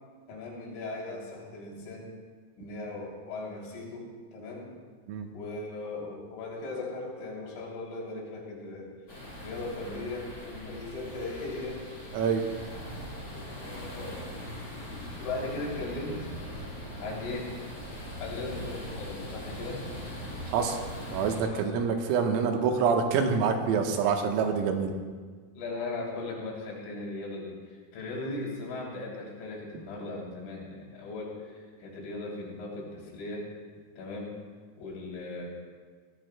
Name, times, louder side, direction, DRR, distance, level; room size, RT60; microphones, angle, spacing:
voice 1, 0.3-2.1 2.6-4.7 5.3-8.9 9.4-11.8 13.2-14.4 15.2-16.3 17.0-17.5 18.2-19.8 21.4-21.7 25.5-33.5 34.0-34.3 34.8-35.5, left 2 dB, 70° left, -3 dB, 5.5 m, -38 dB
sound 1, 9.1-21.4, left 1 dB, 15° left, 5.4 m, -40 dB
voice 2, 20.5-20.8 21.1-24.9, right 6 dB, 85° right, 3 dB, 3.9 m, -26 dB
22.5 x 17.0 x 2.2 m, 1.5 s
omnidirectional pair, 5.9 m